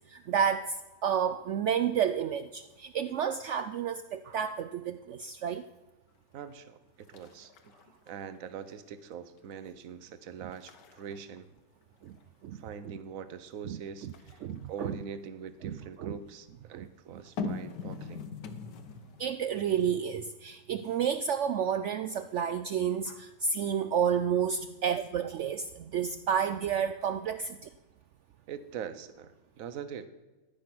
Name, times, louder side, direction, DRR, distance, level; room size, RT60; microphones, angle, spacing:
voice 1, 0.1-0.8 1.0-5.6 12.0-12.2 12.4-12.6 13.7-13.8 14.4-14.9 15.6-16.2 16.7-16.9 17.4-17.6 19.2-27.7, right 8 dB, 85° right, 11 dB, 0.6 m, -30 dB
voice 2, 6.3-7.5 8.1-11.5 12.5-18.2 28.5-30.1, right 7 dB, 60° right, 12 dB, 1.2 m, -43 dB
sound 1, 6.4-6.7 7.0-8.7 9.1-9.6 10.0-10.2 10.5-12.4 14.0-15.9 17.2-19.4 19.7-19.8, left 4 dB, 85° left, 1.6 m, -42 dB
14.0 x 10.0 x 6.0 m, 1.2 s
omnidirectional pair, 1.8 m